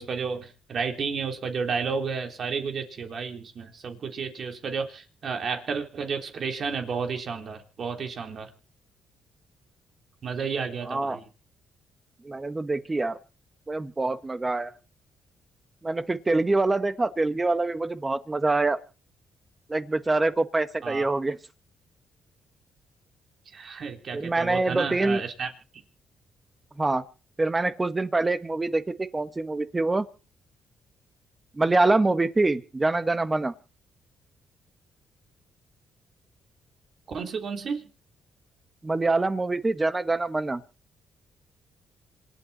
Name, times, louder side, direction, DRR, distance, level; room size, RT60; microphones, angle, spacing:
voice 1, 0.0-8.5 10.2-11.2 20.8-21.0 23.5-25.5 37.1-37.9, right 5 dB, 55° right, 3.7 m, -32 dB
voice 2, 10.9-11.2 12.2-13.2 13.7-14.7 15.8-18.8 19.7-21.4 24.1-25.2 26.8-27.0 27.4-30.1 31.6-33.5 38.8-40.6, right 2 dB, 20° right, 1.6 m, -25 dB
27.0 x 9.1 x 4.3 m
cardioid pair, 90°, 0 cm